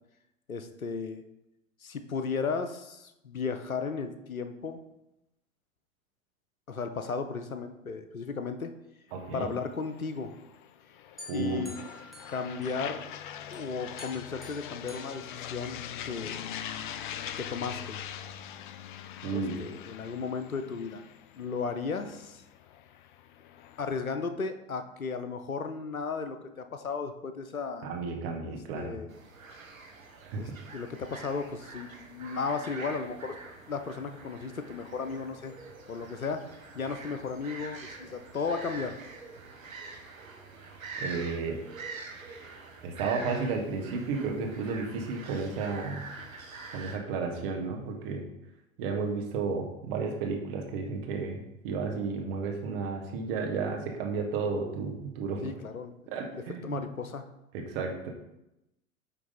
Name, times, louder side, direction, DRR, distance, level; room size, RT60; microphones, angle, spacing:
voice 1, 0.5-1.2 1.8-4.8 6.7-8.7 9.3-10.4 11.3-11.8 12.3-13.1 13.5-16.3 17.4-18.0 19.3-21.0 21.4-22.4 23.8-27.9 28.5-29.1 30.4-33.3 33.7-35.5 35.9-39.0 55.4-57.2, left 5 dB, 85° left, 8 dB, 0.7 m, -35 dB
sound 1, 9.1-24.0, left 10 dB, 40° left, 0.4 m, -43 dB
voice 2, 9.1-9.5 11.3-11.6 19.2-19.5 27.8-29.0 30.2-30.6 41.0-41.6 42.8-46.1 46.7-48.2 48.8-55.6 56.1-56.8 57.5-58.1, right 4 dB, 45° right, 2 dB, 1.4 m, -33 dB
sound 2, 11.2-13.1 13.5-16.1, left 1 dB, ahead, 1.1 m, -50 dB
sound 3, 29.1-47.0, right 3 dB, 75° right, 1.2 m, -45 dB
9.2 x 3.4 x 4.0 m, 0.90 s
figure-of-eight pair, 95°, 41 cm